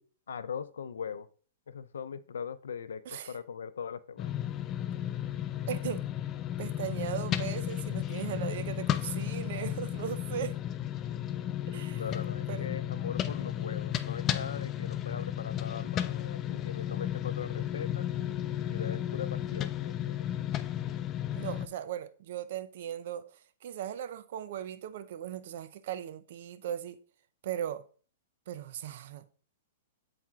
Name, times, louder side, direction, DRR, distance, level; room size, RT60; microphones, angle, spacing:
voice 1, 0.3-1.3 1.7-4.3 11.9-18.1 18.7-20.3, left 7 dB, 85° left, 0.5 m, -40 dB
sound 1, 4.2-21.7, left 11 dB, 25° left, 0.4 m, -33 dB
voice 2, 5.7-6.0 6.6-10.6 11.7-12.0 12.5-12.6 21.3-27.0 27.4-27.8 28.5-29.3, right 10 dB, 60° right, 0.6 m, -38 dB
12.0 x 4.2 x 2.4 m
hypercardioid pair, 140°, 0 cm